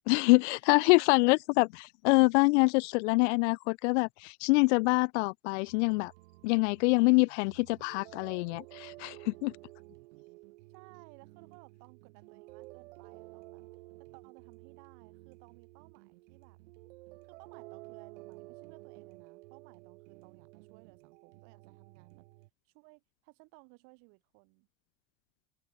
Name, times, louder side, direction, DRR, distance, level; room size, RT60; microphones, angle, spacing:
voice 1, 0.1-1.7 2.0-6.1 6.4-9.5, left 27 dB, 80° left, 0.5 m, -25 dB
voice 2, 0.7-1.4 10.7-13.6 14.0-16.6 17.2-22.2 22.6-24.7, right 38 dB, 55° right, 5.6 m, -59 dB
sound 1, 5.7-22.5, right 22 dB, 85° right, 3.4 m, -52 dB
open air
cardioid pair, 175°, 34 cm